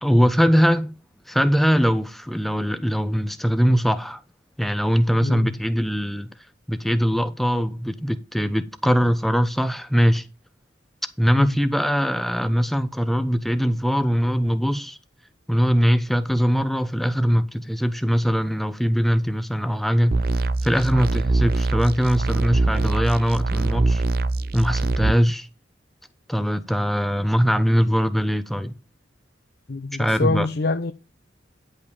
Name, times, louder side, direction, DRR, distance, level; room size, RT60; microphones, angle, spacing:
voice 1, 0.0-0.9 1.3-4.2 4.6-6.3 6.7-10.3 11.2-15.0 15.5-20.2 20.6-24.0 24.5-25.5 26.3-28.7 30.0-30.5, equal, ahead, 0.8 m, -21 dB
voice 2, 5.2-5.5 11.3-11.5 29.7-30.9, left 3 dB, 60° left, 0.7 m, -25 dB
sound 1, 20.1-25.1, right 2 dB, 55° right, 0.6 m, -23 dB
10.5 x 5.5 x 5.3 m
head